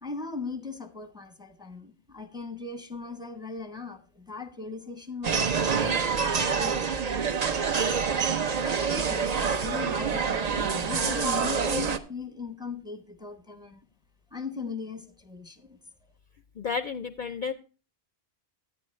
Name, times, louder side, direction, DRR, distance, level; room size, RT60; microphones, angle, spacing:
voice 1, 0.0-7.5 8.3-8.4 8.6-13.8 14.3-15.8, left 4 dB, 5° right, 8 dB, 0.8 m, -39 dB
sound 1, 5.2-12.0, right 6 dB, 45° right, 0.7 m, -27 dB
voice 2, 16.6-17.5, left 5 dB, 55° left, 9 dB, 0.6 m, -31 dB
10.5 x 9.4 x 3.1 m, 0.35 s
omnidirectional pair, 1.1 m